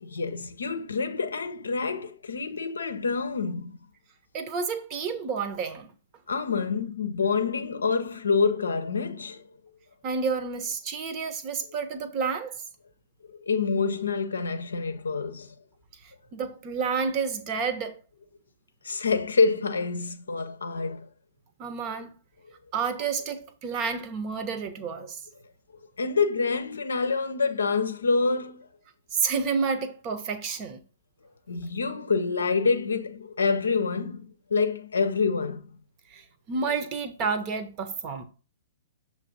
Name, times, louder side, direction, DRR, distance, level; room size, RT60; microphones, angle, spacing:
voice 1, 0.0-3.8 6.3-9.4 13.3-15.6 18.8-21.1 26.0-28.7 31.5-35.8, left 4 dB, 70° left, 0.6 m, -27 dB
voice 2, 4.3-5.9 10.0-12.5 16.3-18.0 21.6-22.1 22.7-25.2 29.1-30.8 36.1-36.2 36.5-38.2, right 5 dB, 30° right, 0.9 m, -30 dB
6.7 x 3.2 x 5.1 m
figure-of-eight pair, 115°, 0 cm